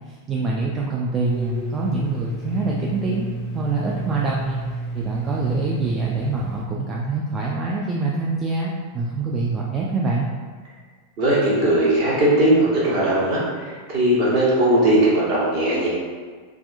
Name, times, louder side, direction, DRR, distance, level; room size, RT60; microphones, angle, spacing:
voice 1, 0.1-3.3 3.5-4.6 4.9-10.3, right 3 dB, 25° right, -3 dB, 0.3 m, -25 dB
Domestic sounds home sounds, 1.3-6.7, right 2 dB, 30° left, 0.5 m, -30 dB
voice 2, 11.2-15.9, right 1 dB, 45° right, -7 dB, 1.1 m, -19 dB
3.3 x 2.4 x 2.6 m, 1.5 s
figure-of-eight pair, 90°, 0 cm